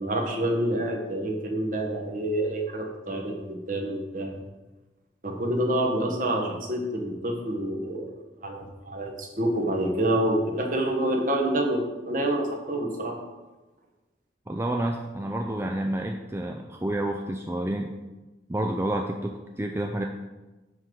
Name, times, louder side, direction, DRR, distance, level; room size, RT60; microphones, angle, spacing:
voice 1, 0.0-4.4 5.2-8.1 8.4-13.2, right 1 dB, 45° right, 2 dB, 1.3 m, -27 dB
voice 2, 14.5-17.9 18.5-20.0, right 1 dB, 15° right, 3 dB, 0.4 m, -29 dB
9.9 x 3.9 x 6.3 m, 1.2 s
head